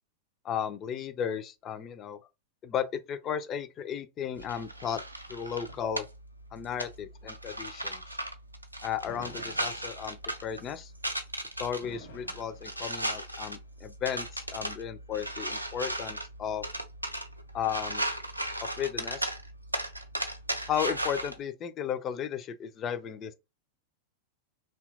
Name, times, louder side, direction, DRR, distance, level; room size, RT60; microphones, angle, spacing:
voice 1, 0.4-2.2 2.6-5.0 5.3-6.1 6.5-8.0 8.8-10.9 11.6-16.7 17.5-18.0 18.6-19.3 20.7-23.3, left 8 dB, 30° left, 0.4 m, -34 dB
sound 1, 4.4-21.4, right 1 dB, 85° right, 0.3 m, -37 dB
Fireworks, 9.1-10.4 11.8-13.4, left 1 dB, 70° left, 1.1 m, -49 dB
2.7 x 2.3 x 2.5 m
figure-of-eight pair, 90°, 0 cm